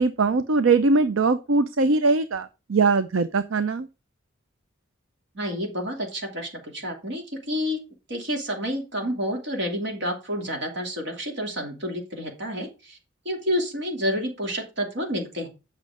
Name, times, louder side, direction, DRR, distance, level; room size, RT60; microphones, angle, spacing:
voice 1, 0.0-3.9, right 3 dB, 75° right, 11 dB, 0.6 m, -21 dB
voice 2, 5.3-7.8 8.1-13.0 13.2-15.5, equal, 60° right, 1 dB, 2.9 m, -29 dB
8.4 x 6.2 x 4.9 m, 0.29 s
head